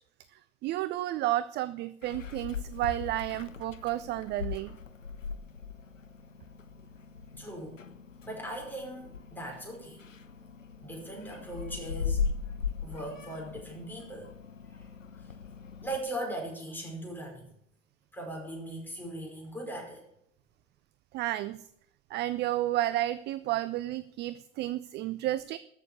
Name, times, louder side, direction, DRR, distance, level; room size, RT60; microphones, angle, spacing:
voice 1, 0.6-4.8 21.1-21.6 22.1-25.6, right 15 dB, 30° right, 17 dB, 0.4 m, -31 dB
Meow, 2.0-16.0, left 5 dB, 85° left, 0.8 m, -39 dB
voice 2, 7.4-7.8 8.2-10.0 10.8-12.2 12.8-14.3 14.7-14.9 15.2-15.3 15.8-17.5 18.1-20.0, right 1 dB, 5° left, 0 dB, 5.4 m, -39 dB
13.5 x 6.6 x 8.3 m, 0.74 s
figure-of-eight pair, 75°, 37 cm